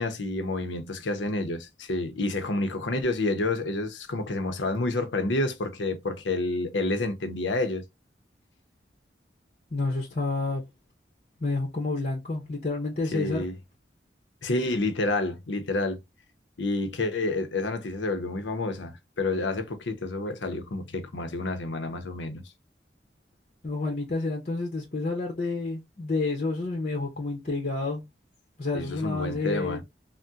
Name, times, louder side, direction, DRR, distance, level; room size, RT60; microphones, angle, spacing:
voice 1, 0.0-7.8 13.1-13.5 14.4-16.0 16.6-22.4 28.7-29.8, left 2 dB, 90° left, 0.7 m, -29 dB
voice 2, 9.7-10.6 11.4-13.4 23.6-28.0 28.6-29.8, left 3 dB, 40° left, 0.8 m, -29 dB
3.5 x 2.1 x 2.6 m
head